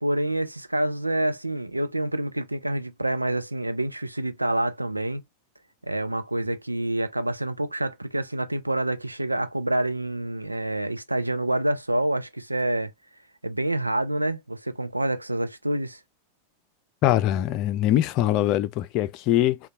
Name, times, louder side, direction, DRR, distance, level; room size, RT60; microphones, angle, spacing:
voice 1, 0.0-5.2 5.8-12.9 13.4-16.0, right 1 dB, 85° right, 0.4 m, -27 dB
voice 2, 17.0-19.6, left 13 dB, 40° left, 0.3 m, -22 dB
3.6 x 2.2 x 2.7 m
figure-of-eight pair, 90°, 0 cm